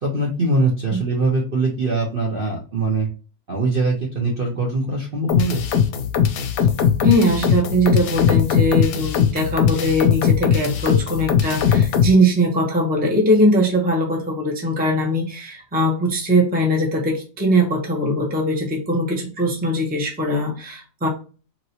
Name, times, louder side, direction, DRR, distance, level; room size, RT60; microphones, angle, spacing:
voice 1, 0.0-3.1 3.5-5.6, right 2 dB, 50° right, -2 dB, 0.7 m, -22 dB
sound 1, 5.3-12.1, left 8 dB, 70° left, 1.0 m, -19 dB
voice 2, 7.0-21.1, equal, 10° right, -1 dB, 0.6 m, -20 dB
2.9 x 2.9 x 2.7 m, 0.35 s
omnidirectional pair, 1.6 m